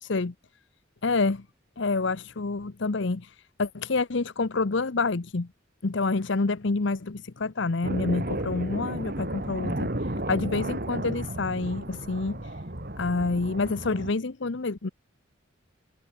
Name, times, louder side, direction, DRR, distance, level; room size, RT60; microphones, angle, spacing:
voice 1, 0.0-0.3 1.0-1.4 1.8-5.5 5.8-12.6 13.0-14.9, left 3 dB, 60° left, 0.8 m, -28 dB
sound 1, 7.8-14.1, right 1 dB, 45° right, 3.0 m, -33 dB
head